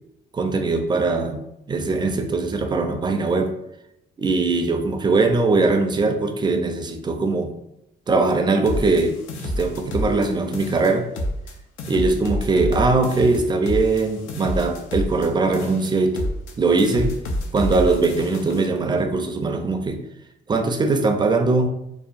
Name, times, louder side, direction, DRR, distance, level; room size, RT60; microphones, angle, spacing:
voice 1, 0.3-3.6 4.2-7.5 8.1-9.2 9.6-11.1 11.9-16.3 16.6-17.2 17.5-20.0 20.5-21.7, right 3 dB, 20° right, 5 dB, 0.4 m, -21 dB
sound 1, 8.7-10.3 10.5-11.5 11.8-15.3 15.5-16.5 16.8-18.7, left 1 dB, 85° left, 0.5 m, -28 dB
2.7 x 2.1 x 2.5 m, 0.82 s
cardioid pair, 90°, 20 cm